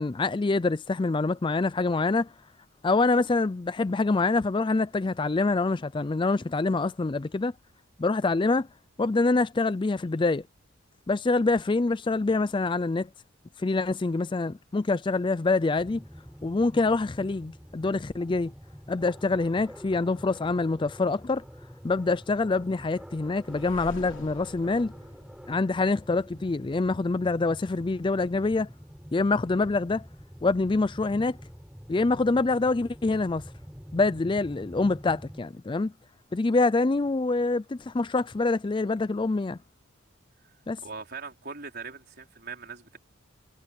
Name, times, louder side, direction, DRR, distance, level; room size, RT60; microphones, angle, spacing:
voice 1, 0.0-2.3 2.8-7.5 8.0-8.7 9.0-10.4 11.1-13.1 13.6-16.0 16.4-18.5 18.9-21.4 21.8-24.9 25.5-28.7 29.1-30.1 30.4-31.4 31.9-33.5 33.9-35.9 36.3-39.6 40.7-40.8, left 3 dB, 25° left, 0.4 m, -25 dB
sound 1, 15.8-35.4, equal, 5° right, 7.9 m, -46 dB
sound 2, 23.4-26.4, left 1 dB, 70° left, 3.3 m, -47 dB
voice 2, 40.8-43.0, right 5 dB, 50° right, 4.7 m, -41 dB
head